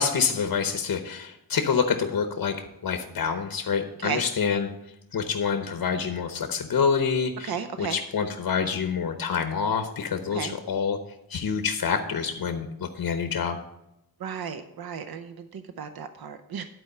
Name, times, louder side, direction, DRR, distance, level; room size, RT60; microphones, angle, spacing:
voice 1, 0.0-2.6 2.8-4.7 5.1-7.5 7.8-11.0 11.3-12.7 13.0-13.6, left 6 dB, 90° left, 6 dB, 0.9 m, -26 dB
voice 2, 7.4-8.0 10.3-10.5 14.2-16.6, right 7 dB, 90° right, 9 dB, 0.7 m, -34 dB
11.0 x 4.6 x 6.7 m, 0.85 s
wide cardioid pair, 135°, 35 cm